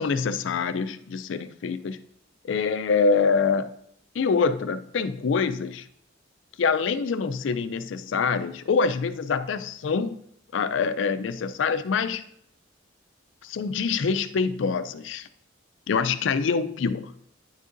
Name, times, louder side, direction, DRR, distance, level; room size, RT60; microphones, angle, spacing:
voice 1, 0.0-2.0 2.5-3.7 4.1-5.9 6.6-10.2 10.5-12.2 13.4-15.3 15.9-17.1, left 5 dB, 70° left, 11 dB, 0.4 m, -25 dB
9.4 x 6.3 x 2.6 m, 0.69 s
head